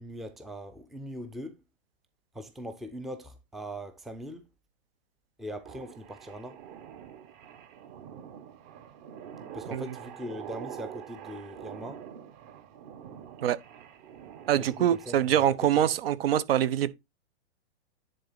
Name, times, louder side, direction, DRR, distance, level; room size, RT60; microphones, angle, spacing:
voice 1, 0.0-1.6 2.3-4.5 5.4-6.6 9.5-12.0 14.5-15.9, equal, ahead, 0.5 m, -41 dB
sound 1, 5.6-15.6, right 9 dB, 40° right, 1.6 m, -46 dB
voice 2, 14.5-16.9, right 11 dB, 60° right, 0.9 m, -24 dB
10.0 x 3.9 x 4.0 m
hypercardioid pair, 135°, 34 cm